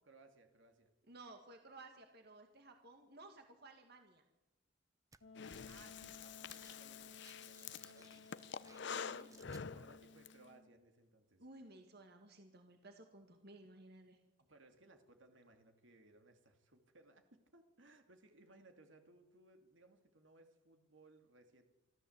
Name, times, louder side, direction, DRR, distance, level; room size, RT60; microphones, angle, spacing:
voice 1, 0.0-0.9 5.6-8.6 9.3-11.4 14.4-21.6, right 2 dB, 75° right, 5 dB, 2.6 m, -65 dB
voice 2, 1.1-4.2 8.9-9.3 11.4-14.2, right 2 dB, 55° right, 5 dB, 2.2 m, -57 dB
sound 1, 5.1-5.2 5.6-5.8 6.1-6.8 7.1-9.7, right 4 dB, 20° right, 0.8 m, -64 dB
Wind instrument woodwind instrument, 5.2-10.7, left 4 dB, 85° left, 2.1 m, -59 dB
Breathing, 5.4-10.3, left 6 dB, 65° left, 0.7 m, -47 dB
26.5 x 14.0 x 8.1 m, 1.0 s
head